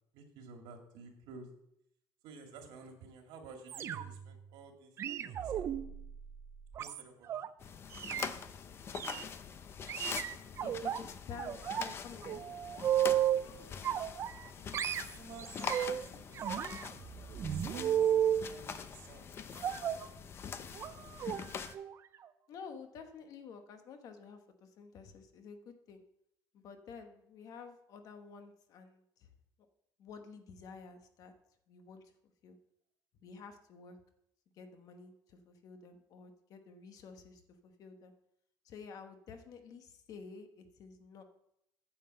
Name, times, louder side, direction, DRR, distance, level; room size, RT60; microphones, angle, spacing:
voice 1, 0.1-1.5 2.2-5.7 6.8-7.3 14.4-14.7 15.0-16.4 17.4-20.3, right 4 dB, 80° right, 3 dB, 2.2 m, -53 dB
sound 1, 3.7-4.3 5.0-7.5 7.9-8.3 8.9-9.2 9.9-11.0 11.4-11.9 12.2-13.4 13.8-14.5 14.7-16.0 16.4-18.4 19.6-20.1 20.7-20.9 21.2-21.4 21.7-21.9 22.2-22.3, right 10 dB, 35° right, 0.4 m, -34 dB
sound 2, 7.6-21.8, left 6 dB, 30° left, 0.5 m, -44 dB
voice 2, 10.6-12.4 13.3-13.7 22.5-26.0 26.5-29.3 30.0-31.3 31.7-32.1 32.4-32.6 33.2-34.0 34.5-38.1 38.6-41.2, left 5 dB, 45° left, 7 dB, 1.1 m, -51 dB
9.2 x 5.7 x 7.7 m, 0.78 s
cardioid pair, 180°, 8 cm